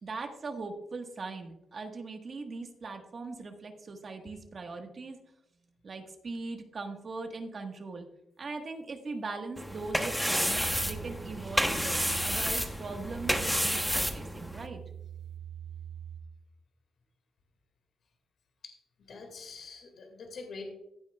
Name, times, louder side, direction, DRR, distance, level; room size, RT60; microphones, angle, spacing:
voice 1, 0.0-5.2 5.8-8.1 8.4-14.8, right 3 dB, 35° right, 4 dB, 1.4 m, -40 dB
sound 1, 9.6-14.7, equal, ahead, 0.8 m, -30 dB
sound 2, 10.5-16.2, right 9 dB, 80° right, 3.3 m, -44 dB
voice 2, 19.1-20.7, left 4 dB, 55° left, 3 dB, 2.1 m, -44 dB
15.5 x 9.0 x 2.4 m, 0.81 s
wide cardioid pair, 165°, 0 cm